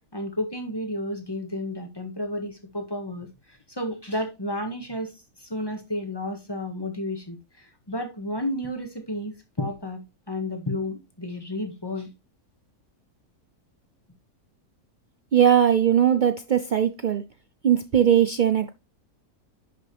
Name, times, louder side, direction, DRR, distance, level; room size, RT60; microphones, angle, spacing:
voice 1, 0.1-10.0 10.3-12.1, left 1 dB, 15° left, 1.7 m, -32 dB
voice 2, 15.3-17.2 17.6-18.7, right 9 dB, 65° right, 0.4 m, -20 dB
10.5 x 6.2 x 3.4 m
omnidirectional pair, 1.6 m